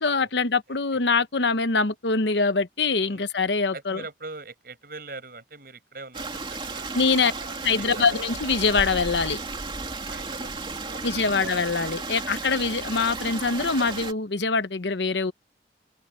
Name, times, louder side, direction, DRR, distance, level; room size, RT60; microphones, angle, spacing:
voice 1, 0.0-4.0 6.9-7.3 7.6-9.4 11.0-15.3, left 4 dB, 75° left, 1.0 m, -24 dB
voice 2, 3.0-3.3 3.7-6.9 7.4-8.4 10.1-11.6 12.2-12.5, right 3 dB, 55° right, 7.0 m, -42 dB
Stream, 6.1-14.1, right 3 dB, 25° right, 2.8 m, -34 dB
open air
head